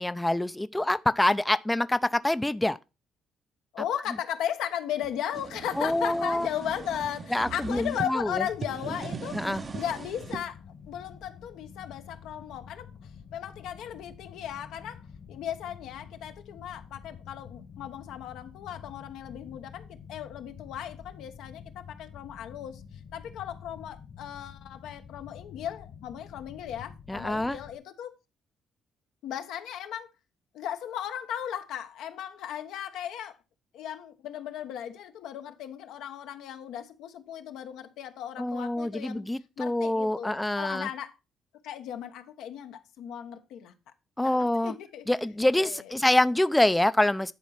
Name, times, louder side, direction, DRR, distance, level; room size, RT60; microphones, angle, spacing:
voice 1, 0.0-2.8 5.8-6.5 7.3-8.4 9.3-9.6 27.1-27.6 38.4-40.9 44.2-44.7 45.1-47.3, left 1 dB, 10° left, 0.5 m, -26 dB
voice 2, 3.7-9.5 9.7-10.6 10.9-12.9 13.3-15.0 15.3-22.8 23.1-28.1 29.2-30.1 30.5-33.4 33.7-39.2 39.6-41.1 41.6-43.7 44.2-45.1 45.6-45.9, left 10 dB, 90° left, 1.1 m, -36 dB
sound 1, 5.0-8.1 8.5-10.4, right 4 dB, 40° right, 0.8 m, -39 dB
sound 2, 8.2-27.8, left 7 dB, 60° left, 1.5 m, -48 dB
10.5 x 4.2 x 5.6 m
cardioid pair, 90°, 0 cm